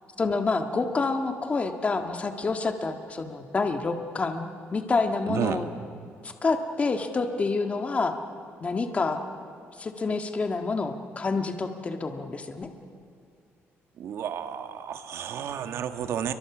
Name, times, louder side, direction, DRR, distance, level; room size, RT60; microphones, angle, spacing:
voice 1, 0.2-5.7 6.2-8.1 8.6-9.2 9.8-12.7, left 3 dB, 25° left, 5 dB, 1.6 m, -28 dB
voice 2, 5.3-5.6 14.0-16.3, right 9 dB, 70° right, 8 dB, 1.6 m, -31 dB
29.5 x 23.5 x 6.1 m, 2.4 s
cardioid pair, 130°, 5 cm